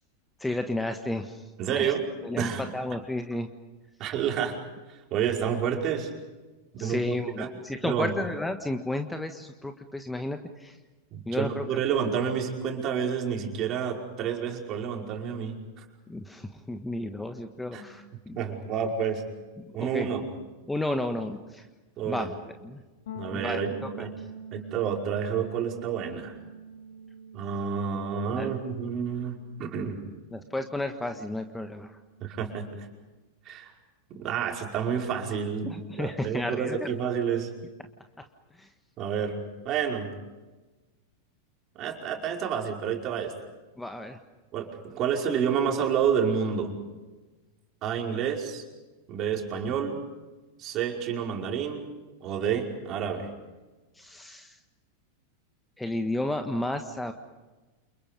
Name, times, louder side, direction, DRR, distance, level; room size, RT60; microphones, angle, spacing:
voice 1, 0.4-1.9 2.2-3.5 6.8-10.8 11.2-11.6 12.3-12.4 16.1-18.5 19.6-20.1 20.7-21.7 22.0-22.3 22.6-22.8 23.3-24.1 28.4-28.5 30.3-32.0 35.6-37.2 38.2-38.3 38.6-38.7 43.8-44.2 53.9-54.6 55.8-57.1, left 1 dB, 5° left, 7 dB, 1.5 m, -33 dB
voice 2, 1.6-2.1 2.4-2.6 4.0-4.6 5.1-6.1 6.7-7.5 7.8-8.1 11.1-15.8 17.7-17.9 18.3-19.2 19.7-20.3 22.0-22.3 23.1-24.1 24.5-26.3 27.3-30.0 32.2-32.7 33.4-33.7 34.1-35.7 36.0-37.5 39.0-40.1 41.7-43.3 44.5-46.7 47.8-48.6 49.1-50.0 50.6-51.9 52.2-53.3, right 7 dB, 35° right, 1 dB, 5.2 m, -29 dB
sound 1, 23.1-32.8, right 3 dB, 60° left, 5.0 m, -46 dB
29.5 x 29.0 x 5.4 m, 1.2 s
figure-of-eight pair, 90°, 0 cm